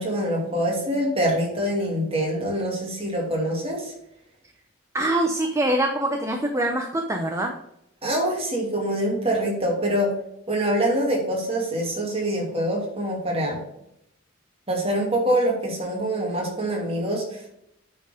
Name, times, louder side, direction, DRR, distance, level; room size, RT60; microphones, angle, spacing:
voice 1, 0.0-3.9 8.0-10.1 10.5-13.6 14.7-17.5, right 1 dB, 30° right, -2 dB, 2.6 m, -25 dB
voice 2, 4.9-7.5, right 1 dB, 15° right, 3 dB, 0.7 m, -24 dB
8.6 x 4.5 x 5.0 m, 0.78 s
head